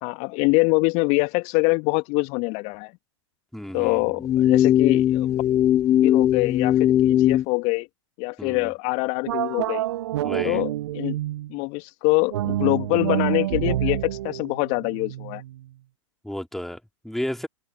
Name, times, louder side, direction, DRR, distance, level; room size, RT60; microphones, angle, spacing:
voice 1, 0.0-2.9 3.7-5.4 6.0-7.9 8.2-9.8 10.4-11.2 11.5-15.4, left 29 dB, 45° left, 2.2 m, -24 dB
voice 2, 3.5-4.3 8.4-8.7 10.2-10.6 16.2-17.5, left 1 dB, ahead, 3.1 m, -33 dB
sound 1, 4.2-7.4, left 11 dB, 20° left, 0.4 m, -19 dB
sound 2, 9.3-11.5 12.3-15.6, right 14 dB, 60° right, 0.9 m, -28 dB
figure-of-eight pair, 100°, 16 cm